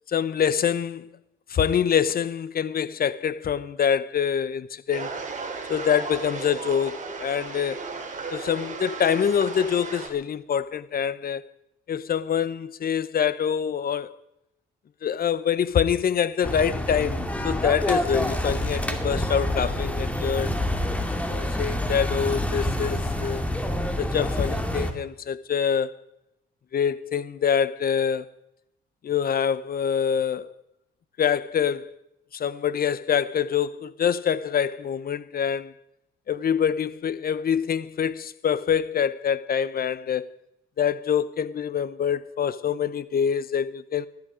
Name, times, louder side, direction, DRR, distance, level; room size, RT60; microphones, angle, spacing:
voice 1, 0.1-1.1 1.5-5.1 5.7-7.8 8.3-11.4 11.9-14.1 15.0-20.5 21.3-23.4 24.0-26.0 26.7-28.3 29.0-30.5 31.2-31.9 32.3-35.7 36.3-40.3 40.8-44.1, left 8 dB, 50° left, 0.9 m, -25 dB
sound 1, 4.9-10.1, right 4 dB, 40° right, 3.8 m, -35 dB
sound 2, 16.4-24.9, left 1 dB, 5° left, 2.4 m, -27 dB
19.0 x 13.0 x 5.1 m
cardioid pair, 90°, 20 cm